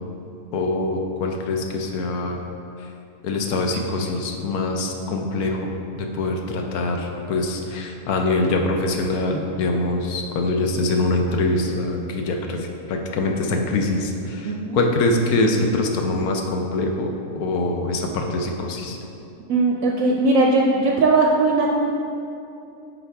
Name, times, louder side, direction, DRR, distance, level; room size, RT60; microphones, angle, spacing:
voice 1, 0.5-2.4 2.8-2.9 3.2-19.0, left 2 dB, 70° left, 2 dB, 1.1 m, -24 dB
voice 2, 14.4-14.8 19.5-21.7, right 3 dB, 70° right, 0 dB, 0.9 m, -19 dB
9.1 x 4.2 x 3.4 m, 2.7 s
omnidirectional pair, 1.7 m